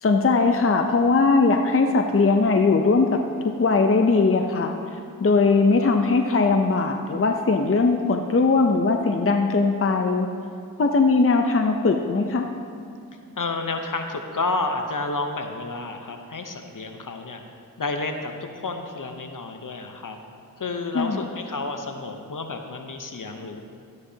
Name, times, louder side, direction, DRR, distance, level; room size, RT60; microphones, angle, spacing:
voice 1, 0.0-3.2 3.4-4.8 5.2-10.3 10.8-12.5 20.9-21.2, left 3 dB, 35° left, 4 dB, 0.6 m, -20 dB
voice 2, 13.4-17.4 17.8-20.2 20.6-23.6, left 3 dB, 60° left, 5 dB, 0.9 m, -30 dB
13.0 x 9.8 x 2.8 m, 2.4 s
cardioid pair, 40°, 36 cm